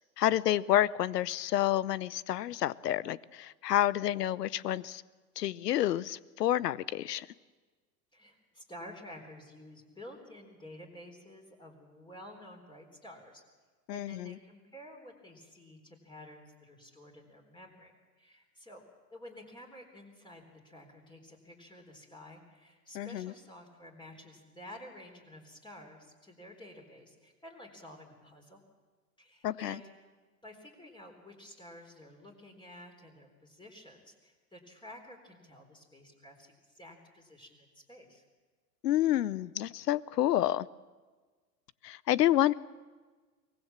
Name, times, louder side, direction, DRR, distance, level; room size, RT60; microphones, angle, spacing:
voice 1, 0.2-5.0 5.4-7.3 13.9-14.4 22.9-23.3 29.4-29.8 38.8-40.7 41.8-42.5, left 13 dB, 80° left, 21 dB, 0.8 m, -29 dB
voice 2, 8.1-13.4 13.9-17.9 18.2-18.8 19.1-28.6 29.2-29.9 30.4-38.2, left 1 dB, 10° left, 2 dB, 4.0 m, -51 dB
23.5 x 18.5 x 7.4 m, 1.4 s
hypercardioid pair, 105°, 48 cm